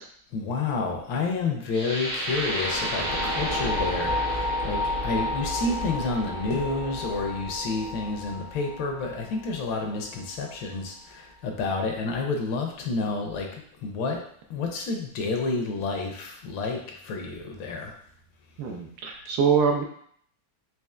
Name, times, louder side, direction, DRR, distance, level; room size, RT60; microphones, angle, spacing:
voice 1, 0.3-14.2 14.5-17.9, left 3 dB, 75° left, 2 dB, 1.3 m, -30 dB
sound 1, 1.7-9.7, left 1 dB, 90° right, 0.4 m, -30 dB
voice 2, 18.6-19.8, right 6 dB, 75° right, 1 dB, 1.2 m, -24 dB
4.2 x 2.9 x 2.4 m, 0.63 s
omnidirectional pair, 2.2 m